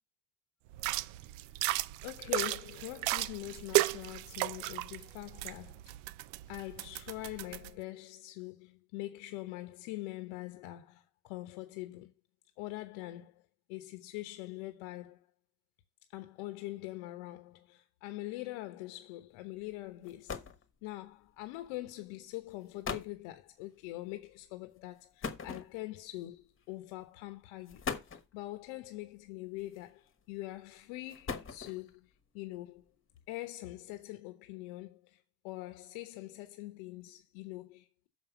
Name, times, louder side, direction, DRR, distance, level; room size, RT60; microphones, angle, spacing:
sound 1, 0.7-7.7, right 18 dB, 85° right, 0.6 m, -35 dB
voice 1, 2.0-5.8 6.5-12.1 12.6-13.4 13.7-15.3 16.1-20.4 20.8-27.8 28.1-32.8 33.3-38.1, left 18 dB, 85° left, 1.2 m, -43 dB
sound 2, 19.7-19.8 20.0-20.7 21.7-21.9 22.5-22.6 22.8-23.2 25.2-26.1 27.0-27.2 27.7-28.3 29.6-30.1 30.9-32.0, left 5 dB, 25° left, 1.1 m, -40 dB
6.7 x 5.6 x 7.1 m
cardioid pair, 145°, 49 cm